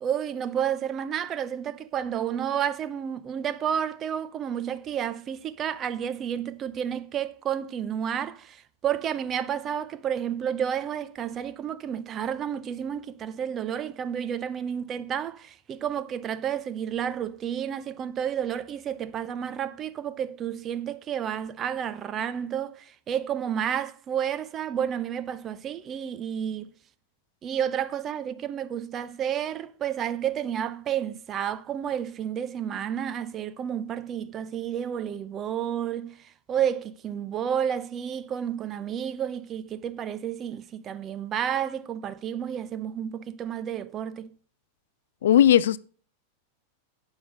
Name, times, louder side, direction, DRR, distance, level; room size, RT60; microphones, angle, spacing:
voice 1, 0.0-26.7 27.4-44.3, right 9 dB, 30° right, 0.7 m, -31 dB
voice 2, 45.2-45.8, left 10 dB, 60° left, 0.4 m, -17 dB
11.5 x 8.2 x 3.9 m
figure-of-eight pair, 90°, 0 cm